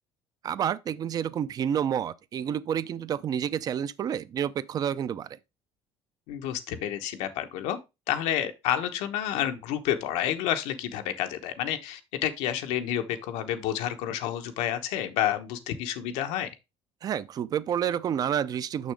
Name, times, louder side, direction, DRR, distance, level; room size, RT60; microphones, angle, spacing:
voice 1, 0.4-5.3 17.0-18.9, right 9 dB, 35° right, 0.4 m, -29 dB
voice 2, 6.3-7.8 8.1-16.5, left 11 dB, 85° left, 1.1 m, -29 dB
6.5 x 6.3 x 3.4 m
cardioid pair, 145°, 11 cm